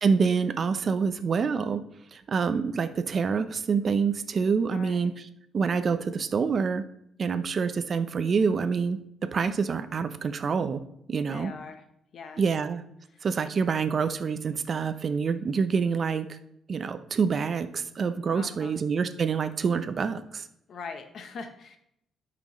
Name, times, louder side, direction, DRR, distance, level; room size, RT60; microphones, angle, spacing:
voice 1, 0.0-1.8 2.1-5.3 5.5-6.8 7.2-10.8 11.1-11.5 12.4-12.8 13.2-16.4 16.7-20.5, right 5 dB, 45° right, 11 dB, 0.7 m, -27 dB
voice 2, 4.7-5.1 11.3-11.8 12.1-12.4 13.1-13.3 18.3-18.8 20.7-21.8, left 4 dB, 60° left, 7 dB, 0.9 m, -42 dB
12.5 x 6.0 x 3.1 m, 0.76 s
cardioid pair, 90°, 0 cm